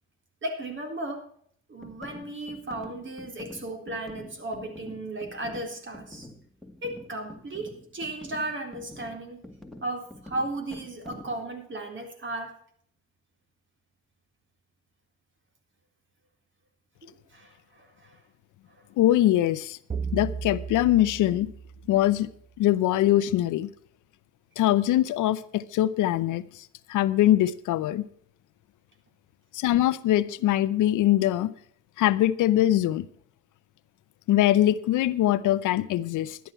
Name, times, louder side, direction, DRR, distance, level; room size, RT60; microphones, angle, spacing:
voice 1, 0.4-1.2 1.7-6.3 6.8-9.4 9.8-12.6 17.0-18.2 18.8-18.9, right 2 dB, 40° right, 3.8 m, -35 dB
sound 1, 1.8-11.5, left 1 dB, ahead, 2.0 m, -46 dB
voice 2, 19.0-19.8 20.1-21.5 21.9-22.3 22.6-23.7 24.6-26.4 26.9-28.1 29.5-31.5 32.0-33.1 34.3-36.4, left 13 dB, 85° left, 0.7 m, -22 dB
sound 2, 19.9-22.4, right 6 dB, 20° right, 0.5 m, -35 dB
12.5 x 10.5 x 4.4 m
cardioid pair, 90°, 30 cm